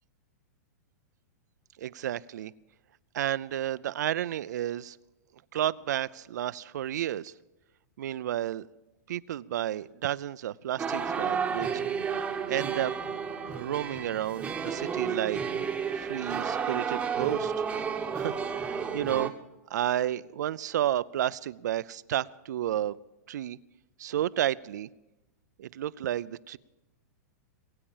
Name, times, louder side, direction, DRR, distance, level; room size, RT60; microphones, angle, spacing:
voice 1, 1.8-2.5 3.1-5.0 5.5-7.3 8.0-8.7 9.1-11.8 12.5-12.9 13.5-15.4 15.9-17.5 18.1-19.3 19.7-23.0 23.3-23.6 24.0-24.9 25.6-26.6, right 11 dB, 80° right, 15 dB, 0.4 m, -31 dB
sound 1, 10.8-19.3, right 6 dB, 10° right, 1.0 m, -32 dB
21.0 x 8.7 x 7.2 m, 0.99 s
hypercardioid pair, 140°, 9 cm